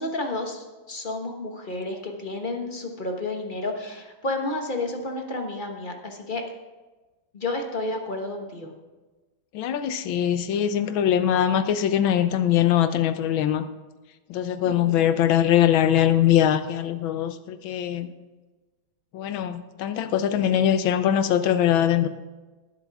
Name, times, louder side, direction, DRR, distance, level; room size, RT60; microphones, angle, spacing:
voice 1, 0.0-6.4 7.3-8.7 14.6-15.0, left 2 dB, 30° left, 3 dB, 1.2 m, -31 dB
voice 2, 9.5-13.7 14.3-18.1 19.1-22.1, left 10 dB, 80° left, 11 dB, 1.5 m, -22 dB
19.0 x 7.6 x 3.6 m, 1.2 s
omnidirectional pair, 2.2 m